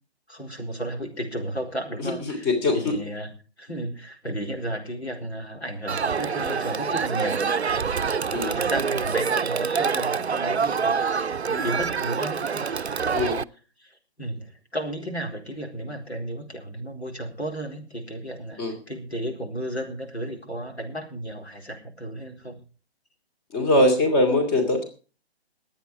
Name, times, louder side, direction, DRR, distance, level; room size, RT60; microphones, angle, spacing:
voice 1, 0.3-3.3 3.6-7.5 8.4-12.8 13.8-22.6, right 1 dB, 85° left, 2 dB, 4.5 m, -33 dB
voice 2, 2.0-3.0 8.3-8.6 13.1-13.4 18.6-18.7 23.5-24.8, left 1 dB, 20° left, 6 dB, 3.0 m, -22 dB
Crowd, 5.9-13.4, right 5 dB, 80° right, 0.6 m, -26 dB
21.0 x 8.9 x 4.9 m, 0.37 s
figure-of-eight pair, 135°, 32 cm